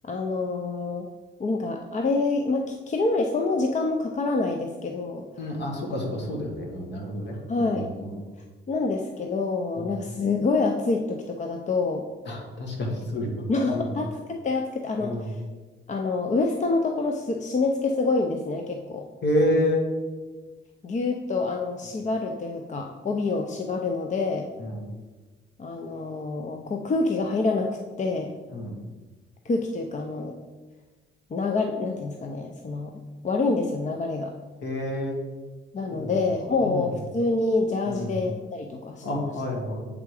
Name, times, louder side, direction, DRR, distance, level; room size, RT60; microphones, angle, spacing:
voice 1, 0.0-1.1 1.4-5.3 7.5-7.9 8.7-12.1 13.5-15.3 15.9-19.1 20.8-24.5 25.6-28.3 29.4-30.3 31.3-34.3 35.7-39.3, left 3 dB, 35° left, 3 dB, 0.6 m, -27 dB
voice 2, 5.4-8.3 9.8-10.0 12.3-14.0 15.0-15.3 19.2-19.8 24.6-24.8 28.5-28.7 34.6-35.2 35.9-36.9 37.9-38.2 39.0-39.9, left 1 dB, 60° left, 1 dB, 1.8 m, -29 dB
8.0 x 3.7 x 4.8 m, 1.3 s
cardioid pair, 90°, 20 cm